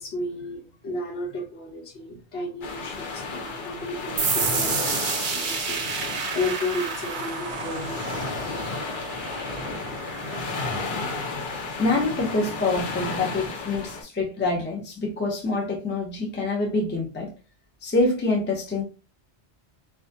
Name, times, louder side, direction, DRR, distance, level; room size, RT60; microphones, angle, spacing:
voice 1, 0.0-8.3 9.1-9.5 11.5-11.6, left 2 dB, 75° left, 1.0 m, -33 dB
sound 1, 2.6-14.0, left 3 dB, 55° left, 0.7 m, -33 dB
sound 2, 4.2-11.6, right 5 dB, 60° right, 0.6 m, -31 dB
voice 2, 11.8-17.3 17.8-18.8, left 2 dB, 15° left, 0.4 m, -26 dB
2.4 x 2.2 x 2.6 m
omnidirectional pair, 1.1 m